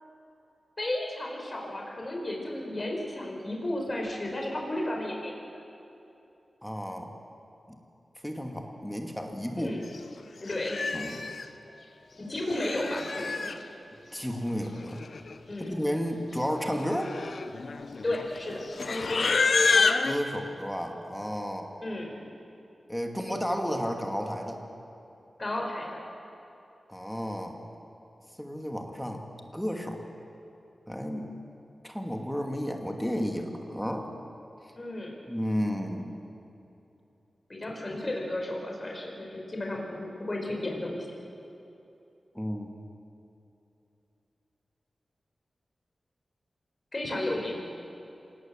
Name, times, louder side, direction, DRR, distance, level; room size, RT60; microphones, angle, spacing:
voice 1, 0.8-5.6 9.6-9.9 10.4-10.8 12.2-13.6 15.5-15.7 18.0-19.3 21.8-22.2 25.4-26.0 34.7-35.2 37.5-41.1 46.9-47.7, left 1 dB, 35° left, 0 dB, 4.9 m, -33 dB
voice 2, 6.6-7.1 7.7-7.8 8.2-9.7 10.9-11.2 14.1-15.0 15.7-17.1 20.0-21.7 22.9-24.6 26.9-27.6 28.4-29.2 29.5-30.0 30.9-31.3 31.8-34.1 35.3-36.2 42.3-42.7, equal, 5° left, 3 dB, 2.4 m, -32 dB
Livestock farm animals working animals, 9.9-10.1 10.5-11.4 12.3-13.6 14.6-14.7 14.9-15.4 15.7-15.9 16.6-20.2, left 4 dB, 65° left, 1.0 m, -28 dB
26.0 x 19.0 x 7.7 m, 2.9 s
wide cardioid pair, 85°, 0 cm